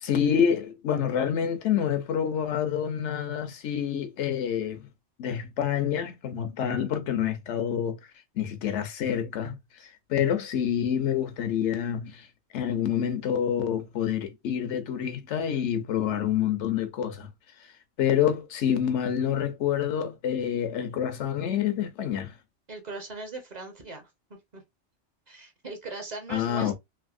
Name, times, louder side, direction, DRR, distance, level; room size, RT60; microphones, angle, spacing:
voice 1, 0.0-4.9 5.2-8.0 8.4-12.3 12.5-17.3 18.0-22.3 26.3-26.7, left 9 dB, 80° left, 0.9 m, -27 dB
voice 2, 22.7-24.1 24.5-24.6 25.3-26.7, right 3 dB, 40° right, 0.8 m, -39 dB
3.4 x 2.6 x 2.4 m
omnidirectional pair, 1.2 m